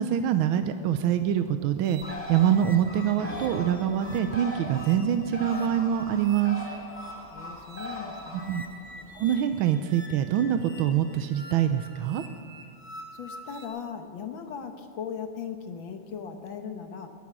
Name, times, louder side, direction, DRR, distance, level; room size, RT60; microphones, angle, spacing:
voice 1, 0.0-6.7 8.5-8.6 9.1-12.2, right 9 dB, 75° right, 9 dB, 1.4 m, -25 dB
sound 1, 1.8-13.7, equal, 15° right, 0.9 m, -47 dB
Bird, 2.0-9.4, left 1 dB, 5° left, 1.6 m, -40 dB
sound 2, 3.2-5.7, right 2 dB, 40° right, 2.3 m, -44 dB
voice 2, 7.3-8.8 13.1-17.1, left 7 dB, 65° left, 6 dB, 1.8 m, -38 dB
21.0 x 10.0 x 6.1 m, 2.1 s
omnidirectional pair, 2.4 m